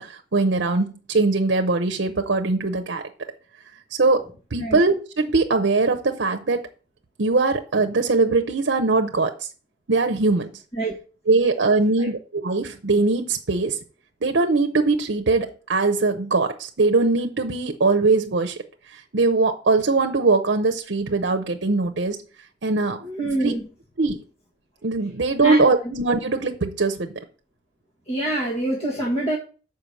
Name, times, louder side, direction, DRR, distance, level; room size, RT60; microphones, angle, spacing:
voice 1, 0.0-3.1 3.9-4.2 4.5-6.7 7.2-9.5 9.9-10.5 11.3-13.8 14.2-22.2 22.6-23.0 23.4-23.5 24.0-24.2 24.8-27.2, right 3 dB, 75° right, 0.8 m, -21 dB
voice 2, 23.0-23.7 25.4-25.6 28.1-29.4, right 1 dB, 35° left, 1.5 m, -25 dB
6.8 x 5.1 x 6.2 m
head